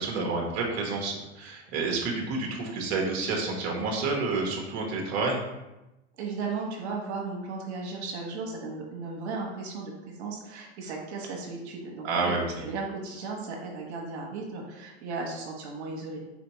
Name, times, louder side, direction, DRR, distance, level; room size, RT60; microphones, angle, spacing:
voice 1, 0.0-5.4 12.0-12.4, right 3 dB, 50° right, -1 dB, 1.1 m, -29 dB
voice 2, 6.2-16.2, right 4 dB, 75° right, -1 dB, 1.1 m, -36 dB
4.2 x 3.8 x 3.1 m, 0.99 s
hypercardioid pair, 115°, 33 cm